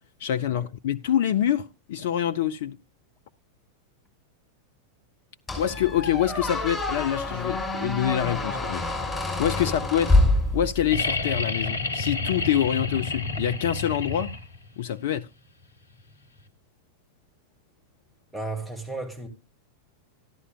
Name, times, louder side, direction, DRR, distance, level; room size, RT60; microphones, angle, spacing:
voice 1, 0.2-2.8 5.6-8.9 9.4-10.2 10.5-14.3 14.8-15.3, left 10 dB, 55° left, 0.4 m, -26 dB
Squeak, 5.5-11.0, left 2 dB, 10° left, 6.1 m, -26 dB
sound 1, 10.9-14.7 16.4-16.5, left 3 dB, 75° left, 1.0 m, -29 dB
voice 2, 18.3-19.3, right 2 dB, 10° right, 2.2 m, -34 dB
13.5 x 11.0 x 2.3 m
figure-of-eight pair, 90°, 0 cm